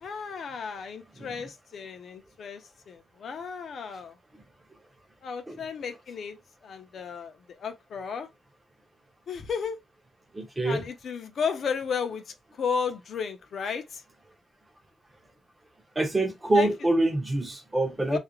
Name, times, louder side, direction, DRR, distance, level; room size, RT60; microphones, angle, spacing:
voice 1, 0.0-2.6 2.9-4.2 5.2-6.4 6.6-7.3 7.6-8.3 9.3-9.8 10.6-14.0 16.6-16.7 18.1-18.2, left 6 dB, 55° left, 0.5 m, -33 dB
voice 2, 10.3-10.9 16.0-18.2, right 2 dB, 15° right, 0.6 m, -25 dB
2.4 x 2.0 x 3.0 m
cardioid pair, 145°, 0 cm